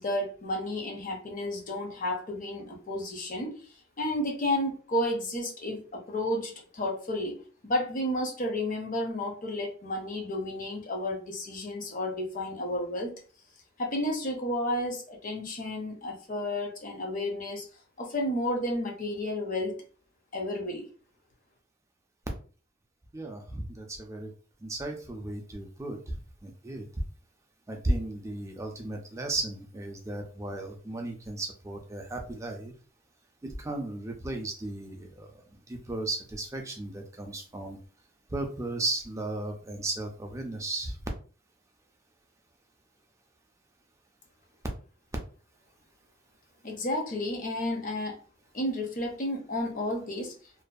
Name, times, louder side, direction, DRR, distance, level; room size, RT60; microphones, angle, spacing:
voice 1, 0.0-3.6 4.0-7.4 7.6-13.2 13.8-17.6 18.0-19.7 20.3-20.8 46.6-48.2 48.5-50.3, left 1 dB, 35° left, 2 dB, 0.6 m, -32 dB
voice 2, 23.1-24.3 24.6-26.2 26.4-26.9 27.7-32.7 33.4-35.3 35.7-37.8 38.3-41.0, right 2 dB, 15° right, 2 dB, 0.4 m, -35 dB
2.6 x 2.3 x 2.3 m, 0.40 s
head